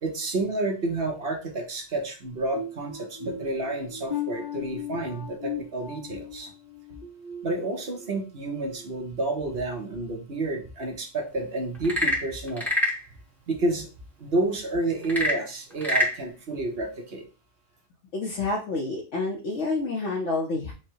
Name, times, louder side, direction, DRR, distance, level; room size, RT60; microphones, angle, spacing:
voice 1, 0.0-6.5 7.4-12.7 13.5-13.9 14.2-17.2, right 2 dB, 55° right, 2 dB, 1.2 m, -30 dB
sound 1, 2.5-8.2 8.6-8.9 9.4-9.6, left 6 dB, 50° left, 0.8 m, -38 dB
Frog / Percussion / Wood, 11.7-13.0 15.0-16.2, equal, ahead, 1.0 m, -25 dB
voice 2, 18.1-20.7, left 3 dB, 75° left, -2 dB, 1.1 m, -28 dB
4.6 x 2.2 x 4.5 m, 0.34 s
omnidirectional pair, 1.2 m